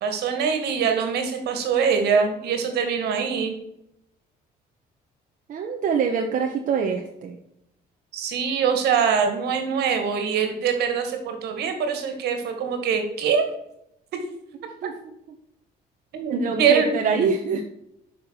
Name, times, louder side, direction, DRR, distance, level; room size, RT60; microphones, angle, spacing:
voice 1, 0.0-3.6 8.1-13.5 16.1-16.9 17.2-17.3, right 6 dB, 75° right, 6 dB, 2.2 m, -23 dB
voice 2, 5.5-7.4 14.8-14.9 16.3-17.7, right 6 dB, 50° right, 3 dB, 1.1 m, -25 dB
7.6 x 6.1 x 6.4 m, 0.78 s
cardioid pair, 110°, 17 cm